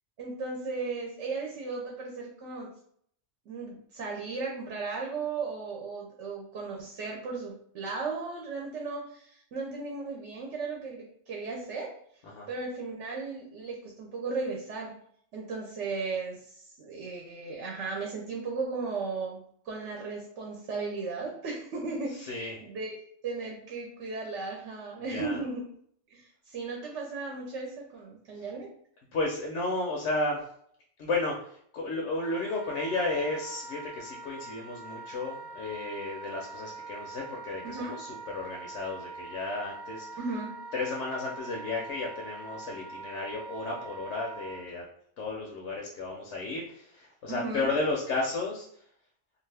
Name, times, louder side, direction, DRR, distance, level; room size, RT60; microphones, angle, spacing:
voice 1, 0.2-2.7 3.5-11.9 12.5-14.9 15.3-19.4 19.7-23.0 23.2-25.6 26.1-28.7 37.6-38.0 40.2-40.5 47.3-47.7, right 4 dB, 75° right, -1 dB, 0.9 m, -36 dB
voice 2, 22.1-22.6 25.1-25.4 28.3-28.4 29.1-30.4 31.0-40.1 40.7-44.8 45.2-48.7, left 2 dB, 75° left, -1 dB, 0.9 m, -33 dB
Wind instrument woodwind instrument, 32.2-44.6, right 3 dB, 55° right, 0.5 m, -43 dB
2.6 x 2.4 x 3.2 m, 0.65 s
omnidirectional pair, 1.2 m